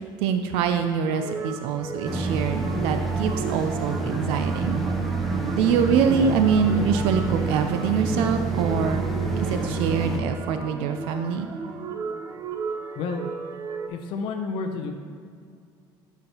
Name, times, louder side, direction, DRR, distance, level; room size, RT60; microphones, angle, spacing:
voice 1, 0.0-4.8 5.5-9.0 9.4-11.5, right 6 dB, 90° right, 7 dB, 0.5 m, -24 dB
sound 1, 1.1-13.9, right 5 dB, 35° right, 0.5 m, -36 dB
sound 2, 2.0-10.2, right 3 dB, ahead, 0.7 m, -27 dB
voice 2, 5.6-6.0 13.0-13.3 13.9-14.9, left 4 dB, 65° left, 5 dB, 0.7 m, -31 dB
10.0 x 5.8 x 2.9 m, 2.2 s
cardioid pair, 150°, 9 cm